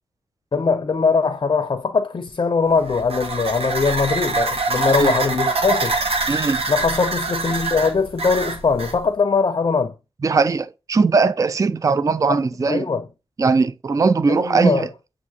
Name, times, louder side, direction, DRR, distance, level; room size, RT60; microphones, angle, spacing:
voice 1, 0.5-6.0 6.7-9.9 12.3-13.1 14.3-14.9, left 4 dB, 45° left, 0.5 m, -21 dB
sound 1, 2.7-9.0, right 3 dB, 70° right, 1.0 m, -24 dB
voice 2, 6.3-6.6 10.2-12.9 13.4-14.9, right 4 dB, 30° right, 0.3 m, -19 dB
7.2 x 2.5 x 2.7 m
cardioid pair, 65°, 10 cm